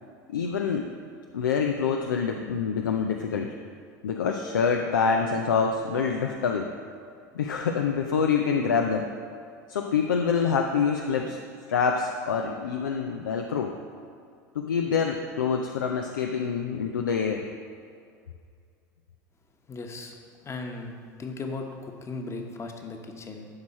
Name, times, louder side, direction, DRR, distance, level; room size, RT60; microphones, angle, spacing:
voice 1, 0.3-0.9 1.3-3.6 4.0-6.7 7.3-9.1 9.7-11.4 11.7-13.7 14.6-17.5, left 6 dB, 90° left, 3 dB, 0.5 m, -26 dB
voice 2, 19.7-20.1 20.4-23.5, left 3 dB, 25° left, 3 dB, 1.1 m, -37 dB
12.0 x 4.8 x 4.2 m, 2.3 s
hypercardioid pair, 80°, 10 cm